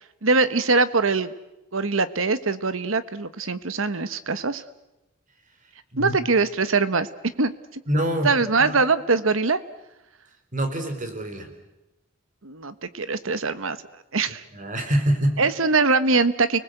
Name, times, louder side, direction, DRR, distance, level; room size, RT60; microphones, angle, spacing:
voice 1, 0.2-1.3 1.7-4.6 6.0-7.1 7.4-7.5 8.2-9.6 12.4-13.8 14.1-14.4 15.4-16.6, right 4 dB, 80° right, 13 dB, 1.2 m, -22 dB
voice 2, 7.9-8.3 8.6-8.8 10.5-11.5 14.5-15.4, equal, 40° right, 6 dB, 4.1 m, -25 dB
30.0 x 20.0 x 8.0 m, 0.99 s
head